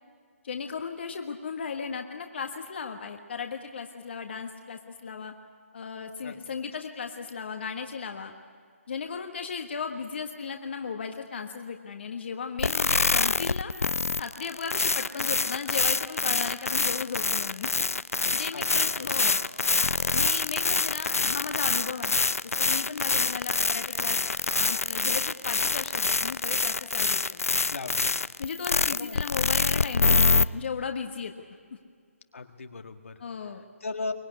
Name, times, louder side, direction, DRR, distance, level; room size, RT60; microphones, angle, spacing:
voice 1, 0.4-5.3 5.7-8.3 8.9-13.7 14.2-17.7 18.3-19.4 20.1-22.2 22.6-24.2 24.6-27.4 28.4-31.3 33.2-33.6, left 6 dB, 50° left, 4 dB, 1.5 m, -36 dB
sound 1, 12.6-30.4, left 4 dB, 80° left, 0.6 m, -26 dB
voice 2, 18.5-18.9 27.7-28.1 28.9-29.2 32.3-33.1 33.8-34.1, left 3 dB, 65° left, 6 dB, 1.8 m, -37 dB
24.0 x 19.0 x 9.7 m, 2.1 s
figure-of-eight pair, 150°, 8 cm